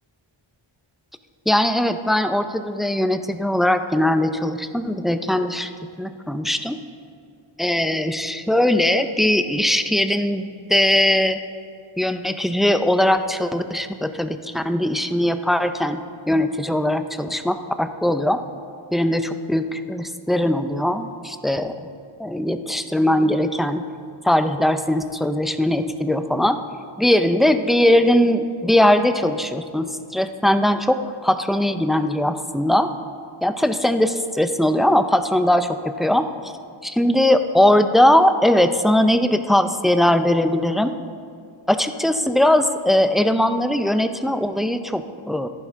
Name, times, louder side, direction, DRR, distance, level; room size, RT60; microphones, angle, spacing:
voice 1, 1.5-5.7 6.0-6.8 7.6-11.4 12.0-18.4 18.9-21.9 22.2-23.8 24.2-26.6 27.0-32.9 33.4-36.5 36.8-41.0 41.7-45.5, left 1 dB, ahead, 9 dB, 0.4 m, -20 dB
14.5 x 11.0 x 3.6 m, 2.4 s
wide cardioid pair, 80°, 49 cm